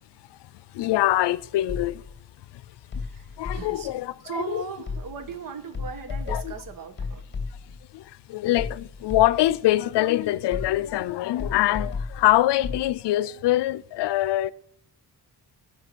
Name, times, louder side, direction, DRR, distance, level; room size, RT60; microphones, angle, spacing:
voice 1, 0.7-2.0 2.5-2.6 3.4-4.6 6.3-6.5 7.9-14.5, left 15 dB, 85° left, 0.6 m, -24 dB
sound 1, 1.7-2.2 2.9-4.0 4.9-5.4 5.7-7.9 8.6-9.6 10.5-11.0 11.4-12.9, left 4 dB, 25° left, 2.3 m, -34 dB
voice 2, 3.0-3.9 4.2-7.2, right 5 dB, 55° right, 1.2 m, -37 dB
15.5 x 5.8 x 6.1 m
wide cardioid pair, 175°, 40 cm